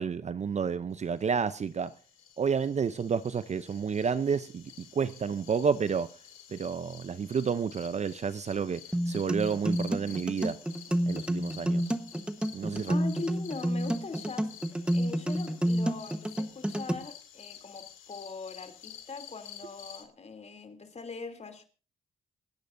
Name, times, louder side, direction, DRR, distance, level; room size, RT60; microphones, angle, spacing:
voice 1, 0.0-1.9 2.4-6.1 6.5-10.6 11.1-11.8 12.5-12.9, right 6 dB, 35° right, 0.6 m, -30 dB
sound 1, 1.2-20.0, left 9 dB, 85° left, 2.5 m, -51 dB
sound 2, 8.9-16.9, equal, 5° right, 1.2 m, -29 dB
voice 2, 12.9-21.6, left 4 dB, 35° left, 3.0 m, -41 dB
27.5 x 10.5 x 2.6 m
cardioid pair, 90°, 20 cm